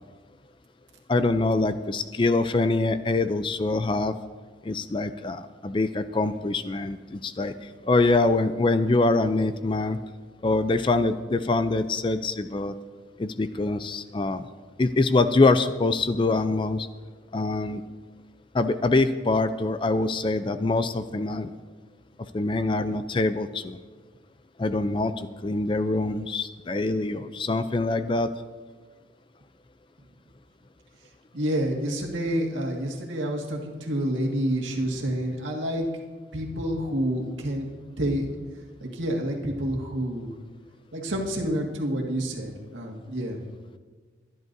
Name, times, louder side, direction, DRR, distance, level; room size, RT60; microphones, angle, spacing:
voice 1, 1.1-4.1 4.7-7.5 7.9-10.0 10.4-12.7 13.2-14.4 14.8-16.9 17.3-17.8 18.5-21.5 22.3-23.8 24.6-25.1 25.4-28.3, left 2 dB, 25° left, 11 dB, 0.4 m, -24 dB
voice 2, 31.3-35.9 36.3-38.3 38.8-40.3 40.9-43.4, right 1 dB, 75° right, 0 dB, 1.9 m, -28 dB
23.5 x 11.0 x 2.7 m, 1.4 s
head